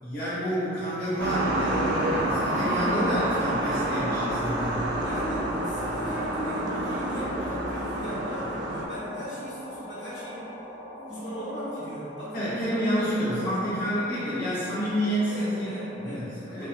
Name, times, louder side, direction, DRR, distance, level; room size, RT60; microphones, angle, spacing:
voice 1, 0.0-4.8 12.3-15.7 15.9-16.7, equal, 50° left, -11 dB, 0.6 m, -29 dB
sound 1, 1.2-8.9, right 2 dB, 75° right, 0.3 m, -29 dB
sound 2, 1.3-16.1, left 1 dB, 10° left, 0.3 m, -38 dB
voice 2, 5.0-10.5 10.9-13.9 15.3-16.7, equal, 80° left, -10 dB, 1.0 m, -37 dB
2.6 x 2.1 x 2.6 m, 2.9 s
head